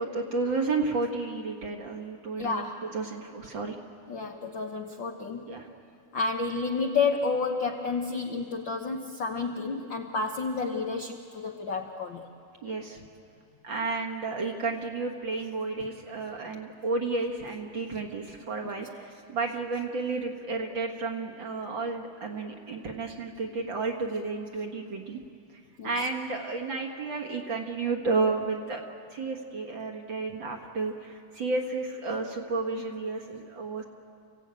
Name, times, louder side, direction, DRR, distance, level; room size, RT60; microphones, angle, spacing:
voice 1, 0.0-3.8 5.5-5.7 12.6-13.0 13.6-25.2 25.5-28.8 29.1-33.8, right 3 dB, 45° right, 2 dB, 1.9 m, -32 dB
voice 2, 2.4-2.8 4.1-5.5 6.1-12.2 25.8-26.1, left 4 dB, 60° left, 3 dB, 1.2 m, -30 dB
29.5 x 16.5 x 9.0 m, 2.5 s
omnidirectional pair, 3.4 m